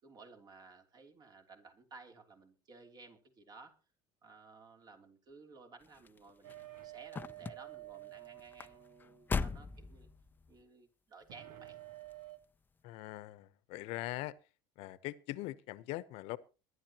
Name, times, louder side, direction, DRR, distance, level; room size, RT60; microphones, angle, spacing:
voice 1, 0.0-3.8 4.2-6.5 6.8-10.1 10.5-11.8, right 4 dB, 40° right, 3.2 m, -56 dB
sound 1, 5.8-10.6 11.3-11.7 12.0-12.1, left 5 dB, 20° left, 0.6 m, -40 dB
sound 2, 6.4-9.4 11.3-12.4, right 17 dB, 85° right, 1.6 m, -50 dB
voice 2, 12.8-14.3 14.8-16.4, left 17 dB, 70° left, 1.0 m, -42 dB
22.5 x 11.5 x 3.0 m
supercardioid pair, 120°, 11 cm